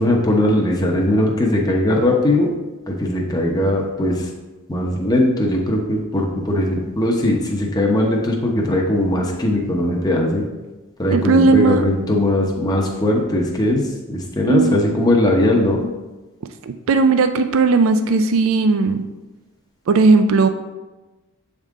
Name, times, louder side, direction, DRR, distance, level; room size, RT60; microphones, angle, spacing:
voice 1, 0.0-2.5 2.9-4.3 4.7-10.5 11.0-15.9, left 1 dB, 15° left, -1 dB, 0.7 m, -19 dB
voice 2, 11.1-11.8 14.5-14.8 16.6-19.0 19.9-20.5, right 4 dB, 65° right, 8 dB, 0.3 m, -16 dB
7.8 x 3.7 x 3.6 m, 1.1 s
head